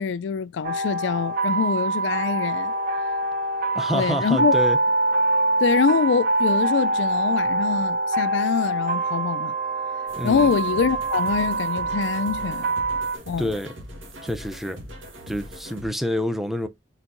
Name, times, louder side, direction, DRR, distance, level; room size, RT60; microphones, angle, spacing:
voice 1, 0.0-2.7 3.9-4.5 5.6-9.5 10.2-12.7 13.3-13.5, left 6 dB, 65° left, 0.4 m, -24 dB
sound 1, 0.6-13.2, right 2 dB, 50° right, 0.8 m, -24 dB
voice 2, 3.7-4.8 10.2-10.5 13.4-13.7 14.2-14.8 15.3-16.7, equal, ahead, 0.6 m, -27 dB
sound 2, 10.1-15.9, equal, 85° right, 1.7 m, -41 dB
4.5 x 4.4 x 2.6 m
head